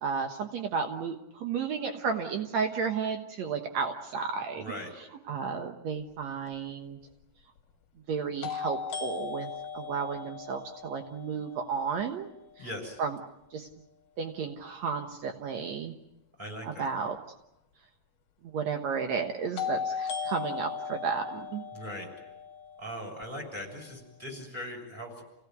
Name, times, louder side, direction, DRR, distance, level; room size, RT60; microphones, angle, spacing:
voice 1, 0.0-4.6 5.3-7.0 8.1-12.3 12.6-12.7 13.0-13.2 13.5-13.7 14.2-15.9 16.6-17.2 18.5-21.7, right 6 dB, 70° right, 5 dB, 1.6 m, -33 dB
voice 2, 4.6-4.9 12.6-13.0 16.4-16.9 21.7-22.1 22.8-25.2, equal, 10° right, 1 dB, 6.8 m, -39 dB
sound 1, 6.5-6.6 8.4-12.3 19.6-23.6, left 6 dB, 55° left, 3.0 m, -37 dB
29.5 x 17.5 x 9.4 m, 0.88 s
omnidirectional pair, 5.0 m